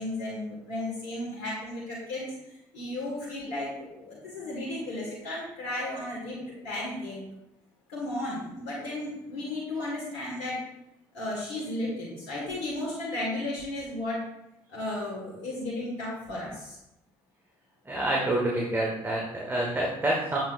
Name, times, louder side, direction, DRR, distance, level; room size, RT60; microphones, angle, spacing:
voice 1, 0.0-7.2 7.9-10.6 11.1-14.2 14.7-16.8, left 1 dB, 75° left, -5 dB, 1.6 m, -34 dB
voice 2, 17.8-20.4, right 1 dB, 20° right, -2 dB, 1.3 m, -27 dB
7.1 x 6.0 x 2.5 m, 0.85 s
hypercardioid pair, 50°, 12 cm